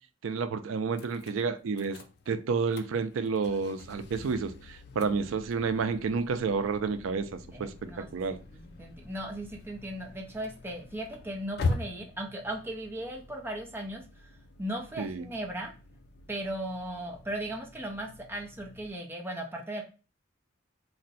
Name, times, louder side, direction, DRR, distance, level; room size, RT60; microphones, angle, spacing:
voice 1, 0.2-2.0 2.3-8.4 15.0-15.3, right 5 dB, 85° right, 0.4 m, -30 dB
sound 1, 0.9-18.9, left 3 dB, 55° left, 0.3 m, -42 dB
voice 2, 7.5-8.1 8.5-14.3 14.6-15.7 16.3-19.8, right 1 dB, 10° right, 0.5 m, -37 dB
2.5 x 2.2 x 3.8 m
head